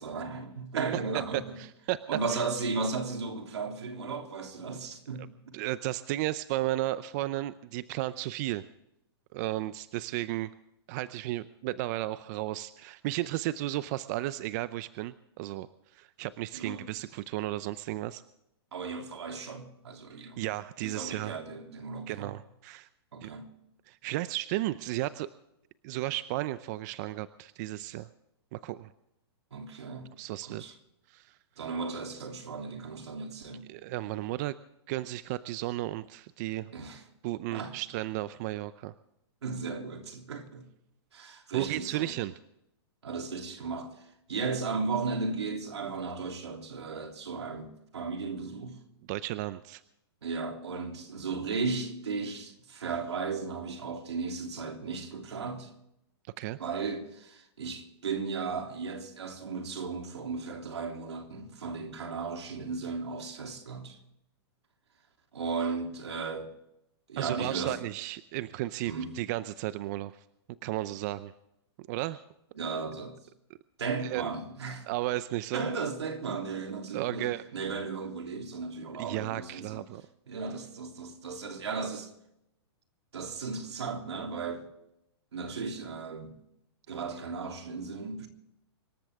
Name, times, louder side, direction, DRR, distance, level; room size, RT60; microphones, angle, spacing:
voice 1, 0.0-1.6 2.1-5.6 16.5-16.8 18.7-20.4 20.8-22.3 23.1-23.5 29.5-30.1 30.4-30.8 31.6-33.7 36.7-37.0 37.5-37.8 39.4-40.7 41.1-42.1 43.0-48.8 50.2-55.7 56.6-64.0 65.3-66.5 67.1-67.8 68.8-69.2 72.5-73.2 73.8-74.9 75.5-79.8 80.3-82.1 83.1-84.6 85.3-86.4 86.9-88.3, right 4 dB, 85° right, 3.2 m, -35 dB
voice 2, 1.6-2.0 2.3-2.4 5.5-8.6 9.3-10.5 10.9-15.7 15.9-18.2 20.2-21.3 22.1-22.9 23.2-23.3 23.9-25.3 25.8-28.1 28.5-28.9 30.2-30.6 31.1-31.4 33.7-34.6 34.9-36.7 37.2-38.9 41.5-42.3 49.1-49.8 56.4-56.6 67.2-70.2 70.6-71.3 71.8-72.2 74.0-74.3 74.9-75.7 76.3-76.4 76.9-77.4 79.0-80.0, right 16 dB, 40° right, 0.6 m, -34 dB
25.0 x 13.0 x 3.6 m
hypercardioid pair, 140°, 14 cm